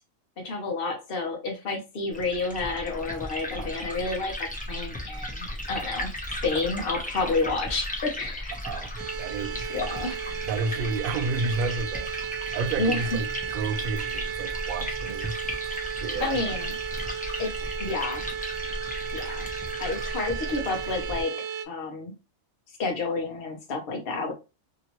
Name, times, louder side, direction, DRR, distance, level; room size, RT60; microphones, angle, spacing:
voice 1, 0.4-6.1 6.4-8.5 9.7-10.2 12.8-13.1 16.2-16.8 17.4-17.5 17.8-18.2 19.1-19.5 19.8-21.3 21.7-22.1 22.8-24.3, left 3 dB, 50° left, 0.9 m, -30 dB
Liquid, 2.1-21.2, left 1 dB, 10° left, 0.5 m, -36 dB
voice 2, 8.6-9.7 10.5-12.1 12.5-13.3 13.5-15.3 16.0-16.4, right 3 dB, 65° right, 0.5 m, -30 dB
sound 1, 9.0-21.7, right 9 dB, 90° right, 1.1 m, -34 dB
2.9 x 2.7 x 2.9 m
omnidirectional pair, 1.4 m